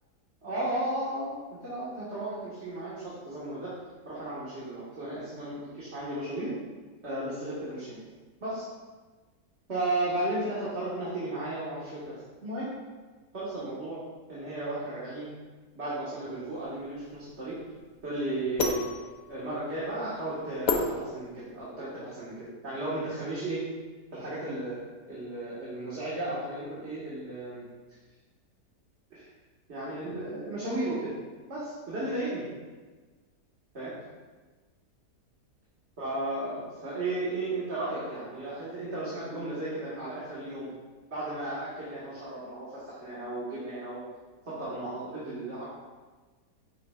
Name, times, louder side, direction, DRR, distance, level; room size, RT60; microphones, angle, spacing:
voice 1, 0.4-3.7 4.1-6.6 7.0-8.0 8.4-8.7 9.7-12.7 13.3-14.0 14.3-15.3 15.7-17.6 18.0-18.8 19.3-23.6 24.1-24.8 25.1-27.6 29.1-29.3 29.7-31.1 31.5-32.5 33.7-34.0 36.0-40.7 41.1-44.0 44.5-45.6, right 1 dB, 45° right, -10 dB, 2.0 m, -34 dB
sound 1, 16.5-21.7, left 3 dB, 85° left, 1.4 m, -33 dB
10.5 x 6.7 x 2.4 m, 1.3 s
omnidirectional pair, 1.7 m